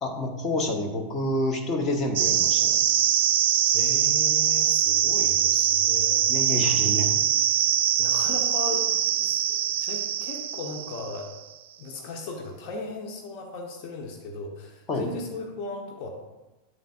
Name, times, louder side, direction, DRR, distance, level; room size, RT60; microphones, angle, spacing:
voice 1, 0.0-2.9 6.3-7.2 14.9-15.1, left 1 dB, 25° left, 2 dB, 1.3 m, -28 dB
sound 1, 2.2-11.3, right 10 dB, 50° right, 0.4 m, -23 dB
voice 2, 3.7-6.7 8.0-11.3 11.8-16.1, left 3 dB, 45° left, 1 dB, 1.0 m, -37 dB
9.1 x 7.8 x 2.5 m, 1.1 s
figure-of-eight pair, 90°, 0 cm